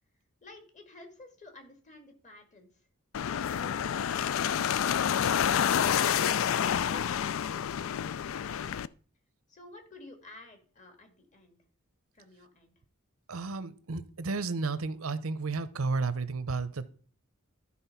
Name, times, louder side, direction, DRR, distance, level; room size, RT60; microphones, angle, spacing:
voice 1, 0.4-2.9 9.5-11.6 12.1-12.7, left 2 dB, 35° left, 1.9 m, -54 dB
sound 1, 3.1-8.9, left 8 dB, 65° left, 0.4 m, -28 dB
voice 2, 13.3-16.8, right 3 dB, 80° right, 0.7 m, -32 dB
12.0 x 4.3 x 5.7 m
head